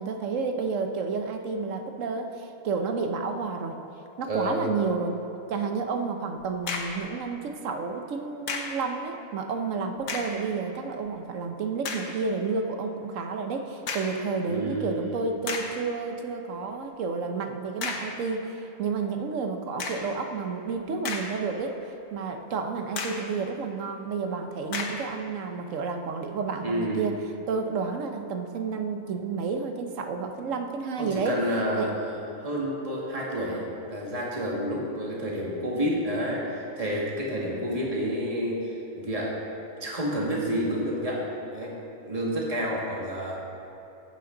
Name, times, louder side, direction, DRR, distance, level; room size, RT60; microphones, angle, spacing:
voice 1, 0.0-3.8 4.2-5.1 5.5-21.8 22.1-27.1 27.5-31.4 31.8-31.9, right 4 dB, 65° right, 5 dB, 1.1 m, -30 dB
voice 2, 4.3-4.6 14.5-15.2 26.6-27.1 31.0-39.4 39.8-41.3 41.5-41.7 42.1-43.4, equal, 25° right, -4 dB, 1.9 m, -29 dB
sound 1, 6.4-7.1 8.5-8.9 10.0-10.5 11.1-11.2 11.8-12.2 13.9-14.3 14.9-15.0 15.5-15.8 17.8-18.2 19.8-20.2 20.8-21.6 22.0-22.1 23.0-23.3 24.7-25.1, left 4 dB, 85° left, 1.5 m, -33 dB
14.5 x 8.6 x 3.8 m, 2.9 s
omnidirectional pair, 1.6 m